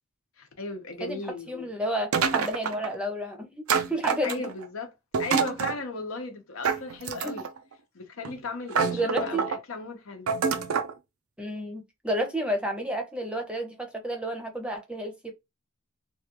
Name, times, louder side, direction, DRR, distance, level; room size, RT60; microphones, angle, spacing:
voice 1, 0.4-1.7 4.2-4.9 5.2-7.5 7.9-10.3, left 3 dB, 70° left, 0.8 m, -36 dB
voice 2, 1.0-4.5 7.2-7.4 8.9-9.5 11.4-15.3, right 1 dB, 5° right, 0.7 m, -31 dB
sound 1, 2.1-2.9 3.7-4.6 5.1-5.8 6.6-7.6 8.2-8.4 8.7-9.6 10.3-10.9, right 6 dB, 85° right, 0.5 m, -27 dB
3.1 x 2.3 x 2.9 m
head